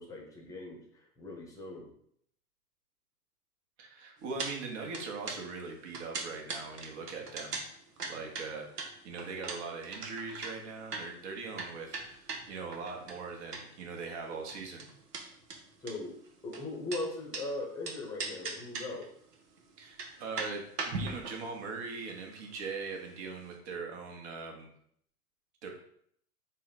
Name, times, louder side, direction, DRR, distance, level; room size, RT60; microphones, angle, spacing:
voice 1, 0.0-1.9 15.8-16.1 16.4-19.1, left 2 dB, 5° left, 0 dB, 0.8 m, -39 dB
voice 2, 3.8-7.6 8.1-14.9 19.8-24.7 25.6-25.7, right 4 dB, 45° right, 2 dB, 1.1 m, -41 dB
sound 1, 4.4-4.5 4.8-13.9 14.1-17.4 17.8-19.1 19.3-19.4 19.8-23.2 23.5-23.6, right 3 dB, 85° right, 0.8 m, -40 dB
3.9 x 2.2 x 4.1 m, 0.67 s
figure-of-eight pair, 100°, 46 cm